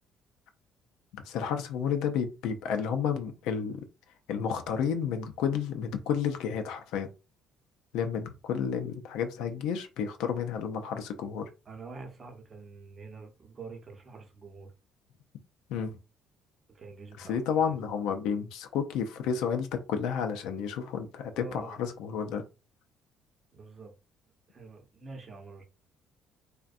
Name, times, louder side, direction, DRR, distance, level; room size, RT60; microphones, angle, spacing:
voice 1, 1.2-3.8 4.3-7.1 7.9-11.5 15.7-15.9 17.2-22.4, left 7 dB, 80° left, 0.4 m, -31 dB
voice 2, 11.7-14.7 16.7-17.7 21.3-21.8 23.5-23.9 24.5-25.6, right 4 dB, 40° right, 0.7 m, -46 dB
2.5 x 2.1 x 2.4 m
supercardioid pair, 80°, 0 cm